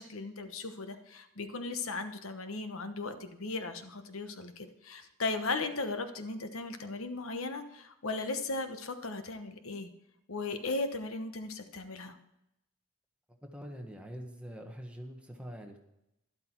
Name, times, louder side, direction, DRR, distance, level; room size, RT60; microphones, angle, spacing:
voice 1, 0.0-9.9 10.3-12.2, left 3 dB, 80° left, 8 dB, 1.1 m, -37 dB
voice 2, 13.4-15.8, equal, 5° right, 2 dB, 1.4 m, -44 dB
12.0 x 11.5 x 4.5 m, 0.85 s
head